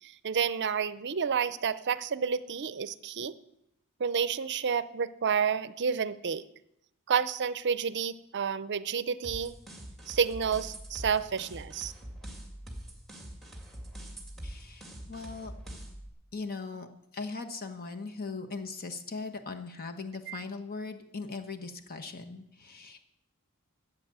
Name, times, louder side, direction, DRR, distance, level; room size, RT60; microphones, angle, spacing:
voice 1, 0.0-3.4 4.0-6.4 7.1-9.5 10.1-11.9 20.3-20.4, right 6 dB, 50° right, 16 dB, 0.6 m, -30 dB
sound 1, 9.2-16.1, right 1 dB, ahead, 2.0 m, -44 dB
voice 2, 14.4-15.5 16.3-16.9 17.1-23.0, left 4 dB, 45° left, 7 dB, 1.2 m, -39 dB
13.0 x 8.3 x 7.4 m, 0.81 s
head